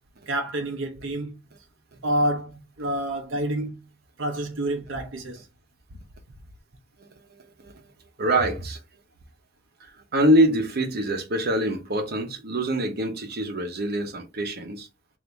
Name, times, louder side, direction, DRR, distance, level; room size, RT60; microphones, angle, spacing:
voice 1, 0.3-1.3 2.0-3.8 4.2-5.5, right 1 dB, 90° right, 0.7 m, -28 dB
voice 2, 8.2-8.8 9.8-14.9, right 1 dB, 55° right, 0.9 m, -24 dB
3.4 x 2.7 x 3.9 m
head